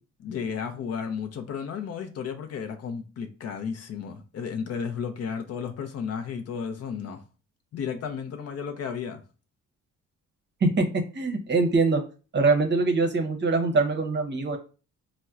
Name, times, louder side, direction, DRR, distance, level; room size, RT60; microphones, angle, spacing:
voice 1, 0.2-7.2 7.7-9.2, left 6 dB, 55° left, 0.6 m, -33 dB
voice 2, 11.1-12.0 12.3-14.6, right 3 dB, 35° right, 0.7 m, -23 dB
4.1 x 2.1 x 2.4 m
cardioid pair, 90°, 30 cm